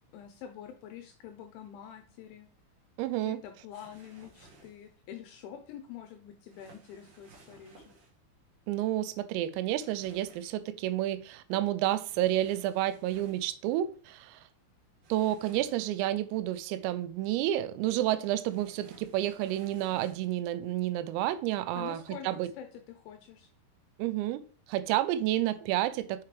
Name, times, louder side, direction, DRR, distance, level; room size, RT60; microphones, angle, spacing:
voice 1, 0.1-2.5 3.2-7.8 21.7-22.3 22.6-23.5, left 9 dB, 85° left, 2.7 m, -46 dB
voice 2, 3.0-3.4 8.7-14.4 15.1-22.0 22.2-22.5 24.0-24.4 24.7-26.2, right 13 dB, 90° right, 3.3 m, -30 dB
sound 1, 3.7-4.9 6.5-8.1 9.8-10.6 12.0-13.5 15.0-16.1 18.5-20.4 22.0-22.2, right 3 dB, 55° right, 2.9 m, -57 dB
7.4 x 5.8 x 3.2 m
omnidirectional pair, 5.9 m